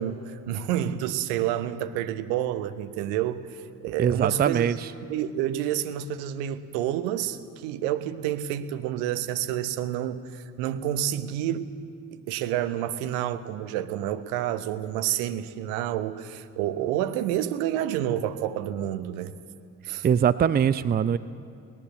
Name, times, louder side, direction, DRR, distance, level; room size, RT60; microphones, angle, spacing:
voice 1, 0.0-3.5 3.8-4.7 5.1-11.7 12.1-19.4 19.8-20.1, right 11 dB, 65° right, 11 dB, 1.0 m, -29 dB
voice 2, 4.0-4.9 20.0-21.2, right 8 dB, 25° right, 15 dB, 0.5 m, -22 dB
19.5 x 19.0 x 8.2 m, 2.3 s
figure-of-eight pair, 45°, 41 cm